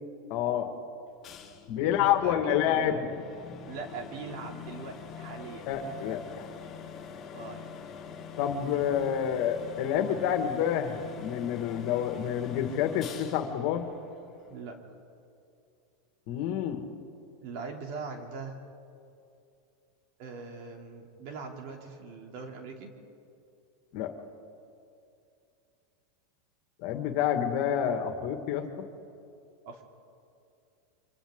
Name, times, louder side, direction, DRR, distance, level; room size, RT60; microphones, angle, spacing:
voice 1, 0.3-0.7 1.7-3.0 5.7-6.5 8.4-13.9 16.3-16.8 23.9-24.1 26.8-28.8, left 9 dB, 55° left, 6 dB, 2.0 m, -28 dB
sound 1, 1.2-14.7, left 7 dB, 30° left, 3.0 m, -45 dB
voice 2, 1.8-3.0 3.7-5.7 7.3-7.7 14.5-14.8 17.4-18.5 20.2-22.9 29.6-29.8, right 4 dB, 60° right, 2 dB, 3.2 m, -41 dB
29.5 x 25.0 x 3.9 m, 2.6 s
supercardioid pair, 130°, 0 cm